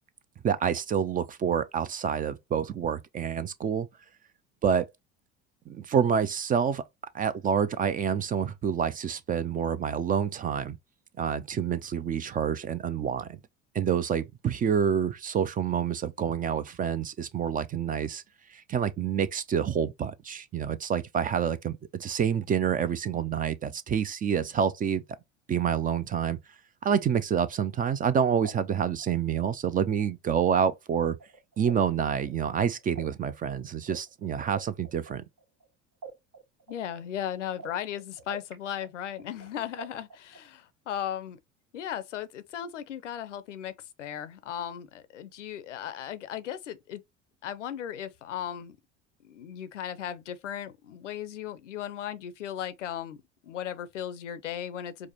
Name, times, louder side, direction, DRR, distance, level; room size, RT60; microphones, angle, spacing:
voice 1, 0.4-3.9 4.6-4.9 5.7-6.8 7.1-10.8 11.2-13.4 13.7-18.2 18.5-25.0 25.5-26.4 26.8-31.2 31.6-35.2, right 7 dB, 25° right, 0.4 m, -28 dB
sound 1, 27.7-30.7 31.0-35.7 36.0-38.5 38.8-40.5, right 3 dB, 55° right, 1.5 m, -45 dB
voice 2, 36.7-41.4 41.7-43.7 44.0-47.0 47.4-48.8 49.2-55.1, left 10 dB, 90° left, 0.5 m, -36 dB
4.8 x 2.1 x 2.8 m
hypercardioid pair, 70°, 35 cm